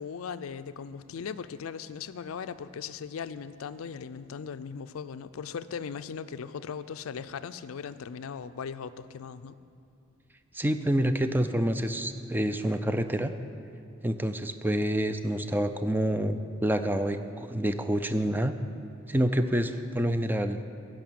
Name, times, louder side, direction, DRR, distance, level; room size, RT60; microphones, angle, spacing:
voice 1, 0.0-9.6, left 6 dB, 80° left, 12 dB, 0.4 m, -38 dB
voice 2, 10.5-13.3 14.0-18.5 19.1-20.6, right 1 dB, 10° right, 9 dB, 0.4 m, -27 dB
13.0 x 5.4 x 9.0 m, 2.5 s
head